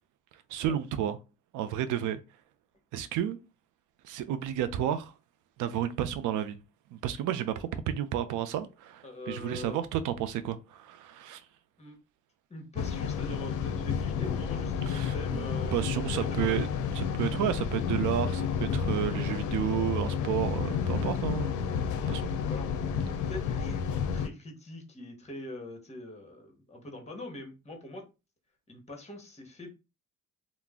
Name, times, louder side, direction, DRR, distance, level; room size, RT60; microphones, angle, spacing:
voice 1, 0.5-1.2 1.5-2.2 2.9-3.4 4.0-5.1 5.6-6.6 6.9-11.4 14.9-16.7 16.9-21.7 22.1-22.3, right 10 dB, 85° right, 0.5 m, -31 dB
voice 2, 9.0-9.8 11.8-12.0 12.5-16.7 20.6-21.5 22.5-22.7 23.3-28.1 28.7-29.8, left 1 dB, 20° left, 1.0 m, -43 dB
sound 1, 12.8-24.3, left 6 dB, 80° left, 0.5 m, -31 dB
2.4 x 2.0 x 3.4 m
cardioid pair, 90°, 30 cm